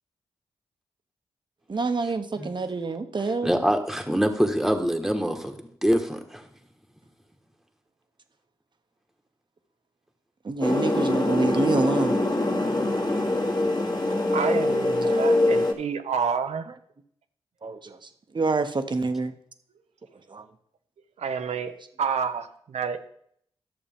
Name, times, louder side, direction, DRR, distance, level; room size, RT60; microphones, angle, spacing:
voice 1, 1.7-3.5 10.4-12.2 17.6-18.0 18.3-19.3 20.3-20.4, right 3 dB, 45° right, 1.0 m, -26 dB
voice 2, 3.2-6.4, equal, ahead, 1.4 m, -25 dB
sound 1, 10.6-15.7, left 2 dB, 40° left, 1.9 m, -24 dB
voice 3, 14.3-16.7 21.2-23.1, right 6 dB, 80° right, 0.8 m, -29 dB
11.5 x 6.8 x 3.6 m
cardioid pair, 50°, 11 cm